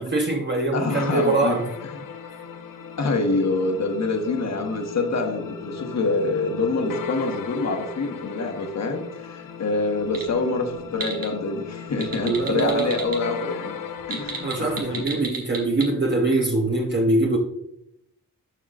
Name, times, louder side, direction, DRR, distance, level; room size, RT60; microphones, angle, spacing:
voice 1, 0.0-1.7 12.2-13.0 14.4-17.4, right 2 dB, 35° right, 0 dB, 0.8 m, -23 dB
voice 2, 0.7-1.6 3.0-13.8 14.1-15.1, left 3 dB, 50° left, 4 dB, 1.3 m, -26 dB
sound 1, 0.9-15.0, left 7 dB, 75° left, 0.7 m, -37 dB
sound 2, 10.1-10.3 10.7-11.3 11.9-13.2 14.0-15.9, right 5 dB, 90° right, 1.8 m, -31 dB
12.5 x 4.8 x 2.5 m, 0.79 s
wide cardioid pair, 125°, 33 cm